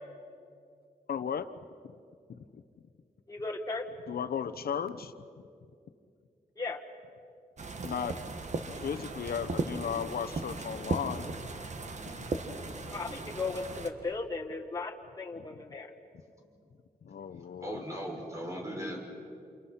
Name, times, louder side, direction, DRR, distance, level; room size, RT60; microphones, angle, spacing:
voice 1, 1.1-1.5 2.5-2.6 4.1-5.1 7.8-8.2 8.6-11.3 12.1-12.3 15.4-15.5 17.0-17.8, left 7 dB, 70° left, 11 dB, 1.0 m, -35 dB
voice 2, 3.3-3.8 6.6-6.8 12.9-15.9, left 3 dB, 25° left, 0 dB, 1.8 m, -36 dB
sound 1, 7.6-13.9, right 3 dB, 45° right, 1.6 m, -37 dB
voice 3, 17.6-19.0, equal, 20° right, 0 dB, 5.3 m, -38 dB
29.0 x 28.0 x 5.8 m, 2.4 s
wide cardioid pair, 120°, 16 cm